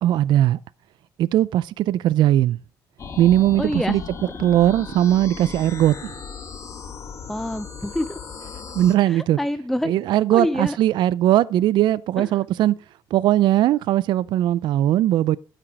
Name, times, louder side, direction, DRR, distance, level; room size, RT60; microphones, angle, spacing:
voice 1, 0.0-0.6 1.2-2.6 3.2-4.0 4.4-6.1 8.7-9.4 9.8-12.7 13.1-15.4, right 13 dB, 70° right, 0.4 m, -19 dB
sound 1, 3.0-9.0, left 6 dB, 40° left, 1.1 m, -37 dB
voice 2, 3.6-4.0 7.3-8.2 9.0-9.9 10.3-10.8 12.2-12.3, left 1 dB, 5° left, 0.4 m, -26 dB
12.5 x 5.9 x 4.5 m
cardioid pair, 125°, 8 cm